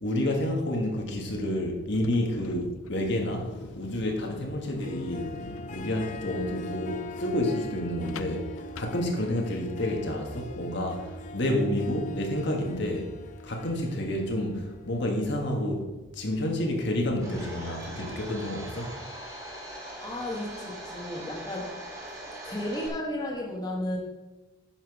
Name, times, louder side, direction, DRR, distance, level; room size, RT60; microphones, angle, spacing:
voice 1, 0.0-5.3 5.7-13.1 13.4-15.9 16.1-18.9, left 1 dB, 55° left, 1 dB, 1.4 m, -29 dB
sound 1, 1.8-9.7, left 4 dB, 90° left, 0.5 m, -44 dB
Harp, 4.6-15.8, left 1 dB, 40° left, 0.5 m, -42 dB
Domestic sounds home sounds, 17.2-22.9, right 1 dB, 15° right, 2.1 m, -41 dB
voice 2, 20.0-21.8 22.2-24.0, left 1 dB, 20° left, -2 dB, 1.4 m, -34 dB
10.0 x 5.9 x 4.8 m, 1.1 s
head